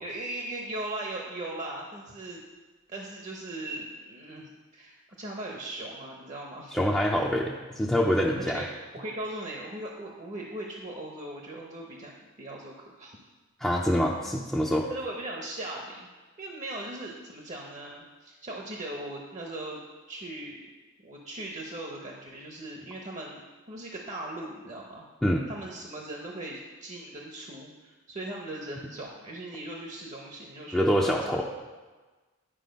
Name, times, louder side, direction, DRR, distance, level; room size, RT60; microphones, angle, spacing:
voice 1, 0.0-2.4 2.9-6.8 8.4-8.7 8.9-12.1 12.4-13.2 14.6-16.1 16.4-19.8 20.1-20.6 21.0-23.4 23.7-25.0 25.5-31.4, right 1 dB, 35° right, -1 dB, 0.9 m, -39 dB
voice 2, 6.7-8.6 13.6-14.9 25.2-25.5 30.7-31.4, equal, 5° left, -4 dB, 0.5 m, -25 dB
10.0 x 4.9 x 5.2 m, 1.3 s
head